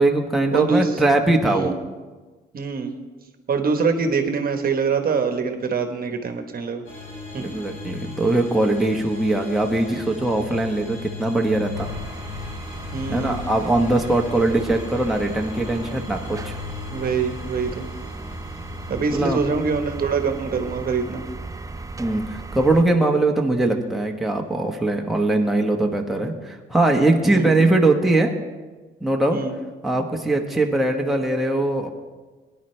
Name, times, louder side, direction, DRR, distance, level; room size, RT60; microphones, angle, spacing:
voice 1, 0.0-1.7 7.4-11.9 13.1-16.5 19.1-19.5 22.0-28.3 29.0-29.4 29.8-31.9, right 2 dB, ahead, 0 dB, 1.2 m, -21 dB
voice 2, 0.5-0.9 1.4-1.7 2.5-3.0 3.5-6.8 7.3-7.5 12.9-13.4 16.9-17.9 18.9-21.2 27.2-27.5 29.3-29.5, right 5 dB, 50° right, 6 dB, 1.2 m, -24 dB
sound 1, 6.9-26.0, left 5 dB, 90° left, 4.4 m, -39 dB
sound 2, 11.7-22.8, right 3 dB, 15° right, 0.4 m, -36 dB
17.5 x 10.0 x 3.3 m, 1.3 s
cardioid pair, 90°, 20 cm